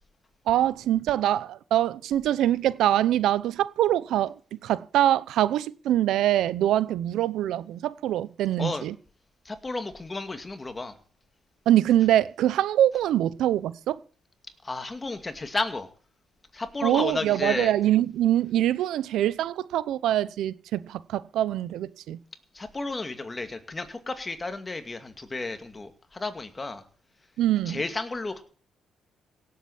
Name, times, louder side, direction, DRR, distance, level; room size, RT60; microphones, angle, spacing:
voice 1, 0.5-8.9 11.7-14.0 16.8-22.2 27.4-27.8, right 12 dB, 80° right, 0.8 m, -24 dB
voice 2, 9.5-10.9 14.6-15.9 16.5-17.7 22.5-26.8 27.7-28.4, left 3 dB, 25° left, 2.2 m, -32 dB
17.5 x 8.0 x 7.2 m
cardioid pair, 90°, 0 cm